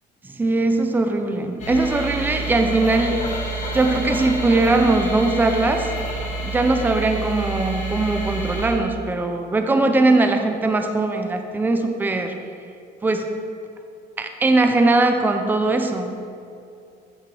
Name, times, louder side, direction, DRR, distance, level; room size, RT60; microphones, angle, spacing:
voice 1, 0.2-3.2 3.7-5.9 6.4-12.3 13.0-13.3 14.2-16.2, right 2 dB, 10° right, 5 dB, 0.5 m, -20 dB
sound 1, 1.6-8.7, right 2 dB, 40° left, 1.8 m, -28 dB
13.5 x 5.8 x 3.4 m, 2.5 s
cardioid pair, 155°, 18 cm